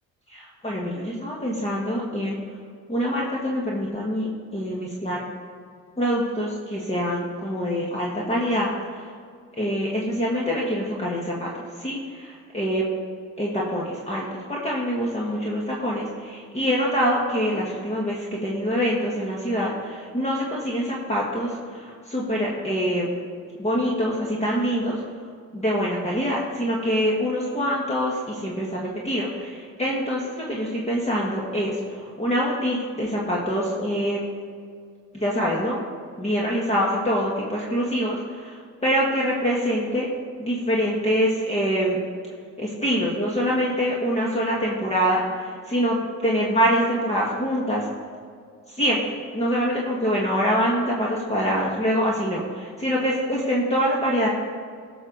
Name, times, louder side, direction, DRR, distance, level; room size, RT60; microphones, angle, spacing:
voice 1, 0.3-2.4 2.9-5.3 6.0-9.1 9.6-11.5 11.8-12.8 13.4-23.1 23.6-25.0 25.5-34.2 35.1-35.8 36.2-40.1 40.4-42.0 42.6-46.0 46.2-47.9 48.7-54.3, equal, 20° left, -4 dB, 1.7 m, -25 dB
15.5 x 6.4 x 4.0 m, 2.1 s
cardioid pair, 90°, 30 cm